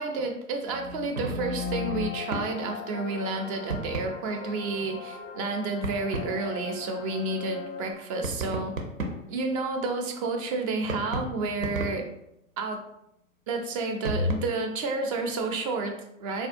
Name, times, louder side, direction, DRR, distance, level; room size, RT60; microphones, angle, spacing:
voice 1, 0.0-8.7 9.3-12.1 12.6-12.8 13.5-16.5, right 3 dB, 30° right, 3 dB, 0.4 m, -30 dB
sound 1, 0.7-2.5 3.7-4.2 5.8-6.3 8.2-9.4 10.8-12.1 14.0-14.4, equal, 80° right, 0.6 m, -32 dB
sound 2, 1.4-7.9, left 7 dB, 30° left, 0.5 m, -41 dB
3.5 x 2.2 x 2.4 m, 0.81 s
figure-of-eight pair, 95°, 39 cm